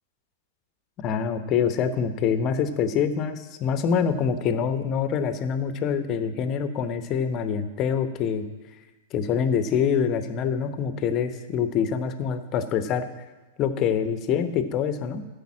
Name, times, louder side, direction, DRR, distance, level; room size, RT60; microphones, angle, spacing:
voice 1, 1.0-8.4 9.1-13.1 13.6-15.3, left 7 dB, 35° left, 10 dB, 0.9 m, -25 dB
13.5 x 5.3 x 7.5 m, 1.2 s
figure-of-eight pair, 100°, 0 cm